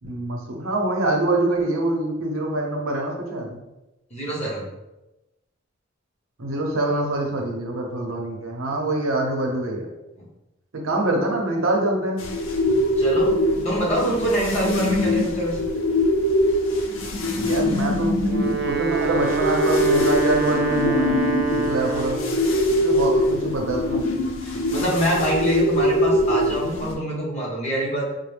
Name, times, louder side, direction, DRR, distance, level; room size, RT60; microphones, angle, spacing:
voice 1, 0.0-3.6 6.4-9.9 10.7-12.2 17.4-18.2 18.6-21.2 21.5-22.2 22.7-24.0, right 1 dB, 90° right, 1 dB, 0.8 m, -25 dB
voice 2, 4.1-4.7 10.2-10.3 12.6-13.4 13.6-15.6 24.4-28.1, right 1 dB, 35° left, -4 dB, 1.0 m, -25 dB
sound 1, 12.2-27.0, left 1 dB, 80° left, 0.6 m, -23 dB
Wind instrument woodwind instrument, 18.1-22.4, right 5 dB, 50° right, 0.4 m, -25 dB
4.1 x 2.1 x 3.3 m, 0.97 s
head